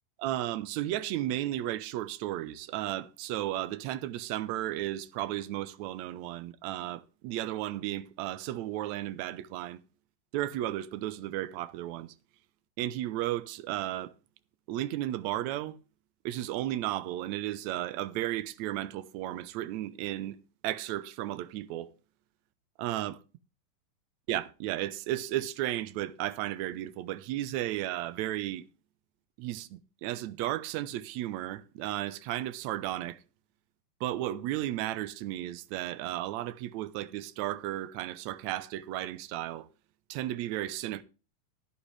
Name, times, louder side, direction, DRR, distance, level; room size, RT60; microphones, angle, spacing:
voice 1, 0.2-9.8 10.3-12.1 12.8-14.1 14.7-15.8 16.3-20.4 20.6-21.9 22.8-23.2 24.3-28.6 29.4-33.2 34.0-39.7 40.1-41.0, right 14 dB, 75° right, 1.7 m, -34 dB
11.5 x 11.0 x 3.2 m
omnidirectional pair, 4.0 m